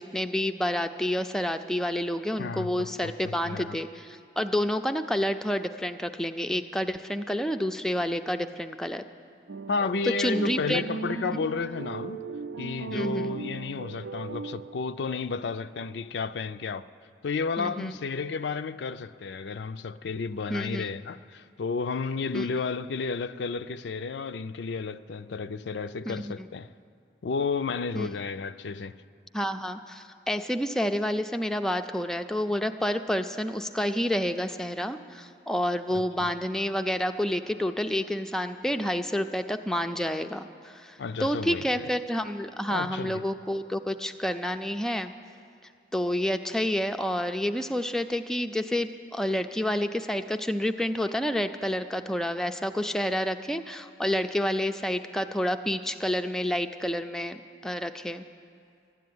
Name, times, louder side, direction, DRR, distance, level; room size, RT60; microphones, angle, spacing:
voice 1, 0.0-9.0 10.2-10.8 12.9-13.3 17.6-17.9 20.5-20.8 22.3-22.5 26.1-26.3 27.9-28.1 29.3-45.1 45.9-58.2, equal, 5° left, 0.4 m, -29 dB
voice 2, 2.4-3.8 9.7-12.3 12.6-16.9 17.2-26.7 27.2-29.0 36.2-36.3 41.0-41.9 42.7-43.2, left 4 dB, 75° left, 0.4 m, -32 dB
sound 1, 9.5-14.9, right 4 dB, 80° right, 0.4 m, -37 dB
12.5 x 10.5 x 9.4 m
head